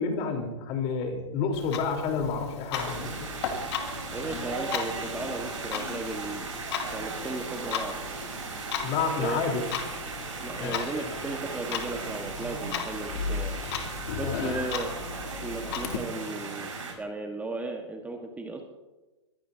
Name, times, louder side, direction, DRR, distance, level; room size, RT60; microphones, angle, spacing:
voice 1, 0.0-3.2 8.8-9.6 10.6-10.8 14.2-14.3, left 5 dB, 40° left, 2 dB, 3.9 m, -29 dB
Clock, 1.5-16.0, left 7 dB, 60° left, 2.7 m, -36 dB
sound 1, 2.7-16.9, right 4 dB, 85° right, 5.6 m, -37 dB
voice 2, 4.1-6.5 6.9-8.1 9.1-9.6 10.4-13.6 14.1-15.0 15.4-16.7 17.0-18.6, right 3 dB, 10° right, 3 dB, 1.5 m, -36 dB
22.5 x 16.5 x 2.8 m, 1.1 s
hypercardioid pair, 120°, 16 cm